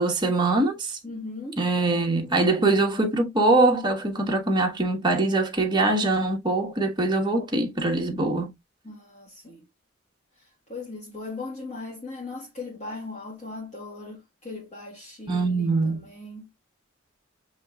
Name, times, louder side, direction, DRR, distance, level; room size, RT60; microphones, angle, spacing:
voice 1, 0.0-1.0 1.6-8.5 15.3-16.0, right 2 dB, 20° right, 1.3 m, -23 dB
voice 2, 1.0-1.6 8.8-9.7 10.7-16.5, left 3 dB, 35° left, 1.3 m, -38 dB
6.9 x 3.0 x 2.3 m
head